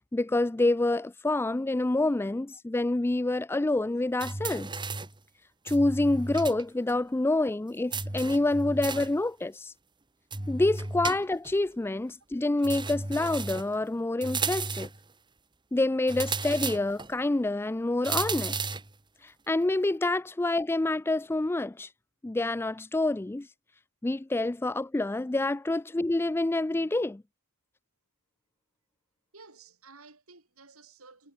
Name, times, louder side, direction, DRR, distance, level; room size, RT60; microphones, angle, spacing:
voice 1, 0.1-4.7 5.7-9.7 10.5-14.9 15.7-18.6 19.5-21.9 22.2-23.5 24.0-27.2, left 2 dB, 10° left, 0.3 m, -27 dB
sound 1, 4.2-5.2 5.7-6.6 6.9-7.0 7.9-9.2 10.3-11.6 12.6-13.7 14.2-15.0 16.1-17.1 18.0-18.9, right 4 dB, 20° right, 1.6 m, -34 dB
voice 2, 29.3-31.3, right 4 dB, 75° right, 7.5 m, -53 dB
head